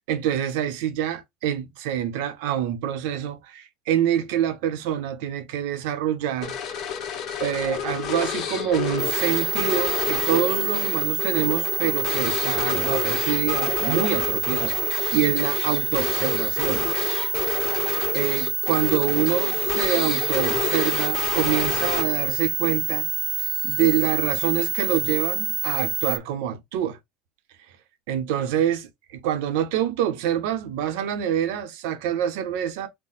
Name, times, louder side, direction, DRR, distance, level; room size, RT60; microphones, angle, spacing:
voice 1, 0.1-6.8 7.4-16.9 17.5-17.6 18.1-23.1 23.4-27.0 28.1-32.9, right 10 dB, 80° right, 1.1 m, -26 dB
sound 1, 6.4-22.4, left 8 dB, 50° left, 1.2 m, -29 dB
sound 2, 9.0-26.2, right 7 dB, 40° right, 0.5 m, -27 dB
4.6 x 2.3 x 4.1 m
supercardioid pair, 125°, 0 cm